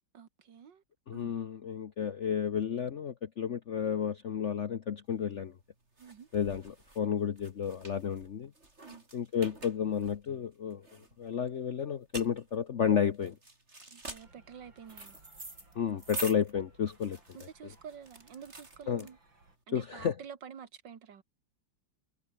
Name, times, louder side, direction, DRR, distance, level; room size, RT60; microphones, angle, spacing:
voice 1, 0.1-0.8 1.1-1.3 6.0-6.3 8.8-9.1 13.8-15.2 17.3-19.2 19.7-21.2, right 7 dB, 70° right, 2.3 m, -49 dB
voice 2, 1.1-5.5 6.3-8.5 9.1-10.8 11.2-13.4 15.8-17.2 18.9-19.0 19.7-20.1, left 8 dB, 50° left, 1.0 m, -32 dB
sound 1, 5.2-19.5, right 2 dB, 35° right, 5.2 m, -47 dB
sound 2, 14.2-19.6, right 2 dB, 85° right, 8.1 m, -63 dB
omnidirectional pair, 2.0 m